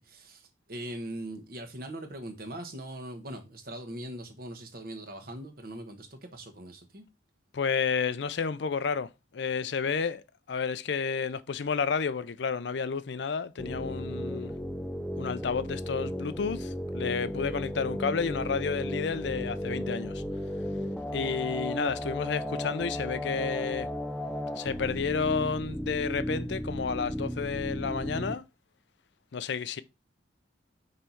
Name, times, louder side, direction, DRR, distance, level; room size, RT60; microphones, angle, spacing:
voice 1, 0.0-7.0, right 1 dB, 50° right, 1.1 m, -41 dB
voice 2, 7.5-9.1 9.3-10.2 10.5-14.5 15.2-20.2 21.1-23.9 24.6-28.4 29.3-29.8, left 5 dB, 70° left, 0.5 m, -31 dB
sound 1, 13.6-28.4, equal, 5° left, 0.4 m, -35 dB
5.5 x 4.1 x 4.5 m
head